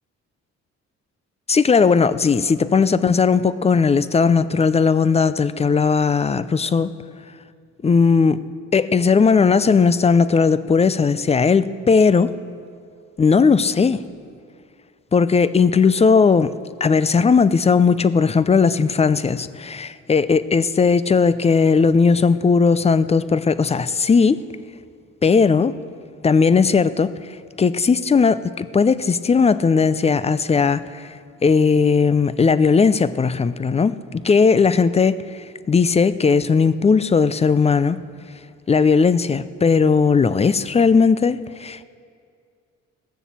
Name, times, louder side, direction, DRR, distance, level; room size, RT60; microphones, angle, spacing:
voice 1, 1.5-6.9 7.8-8.4 8.7-12.3 13.2-14.0 15.1-16.5 16.8-24.4 25.2-25.7 26.2-27.1 27.6-31.1 31.4-35.2 35.7-38.0 38.7-41.8, left 5 dB, 20° left, 0.4 m, -17 dB
17.0 x 7.0 x 7.4 m
cardioid pair, 90°, 30 cm